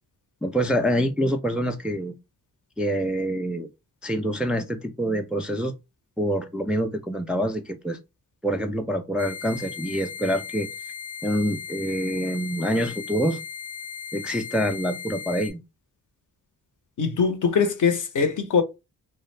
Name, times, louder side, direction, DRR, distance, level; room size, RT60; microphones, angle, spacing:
voice 1, 0.4-2.1 2.8-3.7 4.0-5.7 6.2-8.0 8.4-10.7 11.2-13.4 14.1-15.6, equal, 5° right, 0.4 m, -26 dB
sound 1, 9.2-15.5, left 6 dB, 85° left, 1.1 m, -37 dB
voice 2, 17.0-18.6, left 5 dB, 50° left, 0.7 m, -22 dB
2.3 x 2.1 x 3.2 m
supercardioid pair, 40°, 39 cm